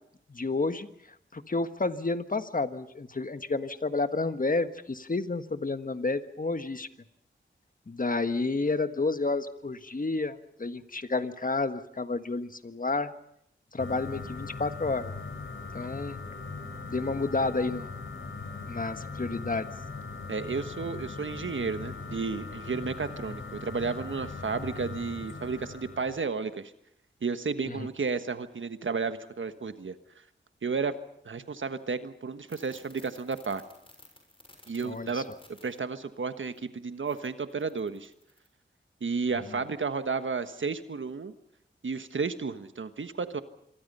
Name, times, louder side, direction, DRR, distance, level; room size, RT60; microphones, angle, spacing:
voice 1, 0.3-0.9 1.3-6.9 7.9-13.1 13.7-15.1 15.7-16.2 16.9-17.9 18.7-19.7 27.7-27.9 34.8-35.2, left 3 dB, 45° left, 10 dB, 1.5 m, -30 dB
sound 1, 13.8-26.2, left 4 dB, 85° left, 4.2 m, -40 dB
voice 2, 20.3-26.7 27.2-29.9 30.6-31.0 31.2-33.6 34.7-35.2 35.6-38.1 39.0-41.3 41.8-43.4, right 4 dB, 75° right, 10 dB, 1.4 m, -32 dB
sound 2, 32.5-35.8 36.4-36.6 37.1-38.5, left 1 dB, 25° left, 6.3 m, -56 dB
26.5 x 23.5 x 5.6 m, 0.74 s
wide cardioid pair, 60°, 20 cm